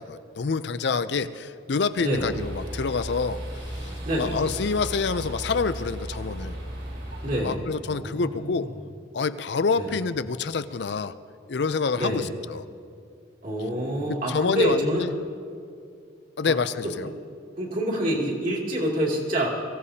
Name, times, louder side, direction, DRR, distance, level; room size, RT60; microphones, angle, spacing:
voice 1, 0.0-3.4 3.7-3.9 4.2-6.5 7.4-8.7 9.1-11.1 11.5-12.6 14.1-15.1 16.4-17.1, left 4 dB, 60° left, 13 dB, 0.5 m, -27 dB
voice 2, 2.0-2.4 4.0-4.4 7.2-8.7 9.8-9.9 11.9-12.3 13.4-15.1 16.4-16.5 17.0-17.1 17.6-19.5, equal, 45° right, -3 dB, 2.6 m, -27 dB
sound 1, 2.1-7.4, right 1 dB, 75° right, 4.2 m, -35 dB
23.0 x 16.0 x 2.8 m, 2.3 s
head